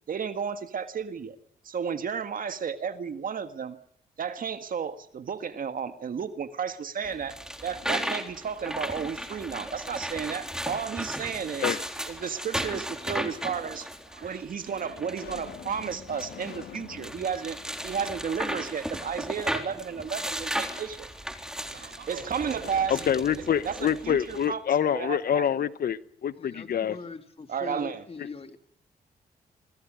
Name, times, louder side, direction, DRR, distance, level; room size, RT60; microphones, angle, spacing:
voice 1, 0.1-1.4 1.6-3.8 4.2-7.4 7.6-11.8 12.1-13.9 14.2-17.6 17.8-21.1 22.1-23.0 23.6-24.6 24.9-25.4 27.5-28.0, right 7 dB, 60° right, 1.7 m, -33 dB
sound 1, 7.0-24.5, equal, 5° right, 3.8 m, -36 dB
sound 2, 7.5-8.4 8.8-10.1 11.3-12.1 13.0-13.1 14.0-14.1 14.7-18.8 19.1-19.2 22.5-25.3, left 9 dB, 85° left, 1.9 m, -49 dB
voice 2, 13.8-14.4 14.8-15.0 18.6-19.2 19.7-19.8 21.4-23.8 24.8-25.0, right 6 dB, 80° right, 5.9 m, -47 dB
voice 3, 22.9-26.9, left 9 dB, 65° left, 1.1 m, -26 dB
voice 4, 26.4-28.6, left 4 dB, 40° left, 2.9 m, -41 dB
26.0 x 21.5 x 5.1 m
cardioid pair, 75°, 16 cm